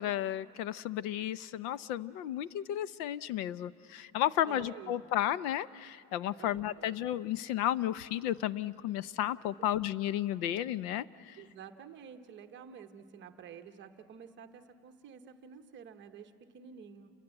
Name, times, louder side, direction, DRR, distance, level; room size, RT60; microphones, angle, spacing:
voice 1, 0.0-11.4, left 12 dB, 65° left, 18 dB, 0.8 m, -33 dB
voice 2, 4.5-5.1 6.4-7.0 11.4-17.1, right 7 dB, 25° right, 6 dB, 0.9 m, -50 dB
29.0 x 22.5 x 8.9 m, 2.6 s
cardioid pair, 175°, 46 cm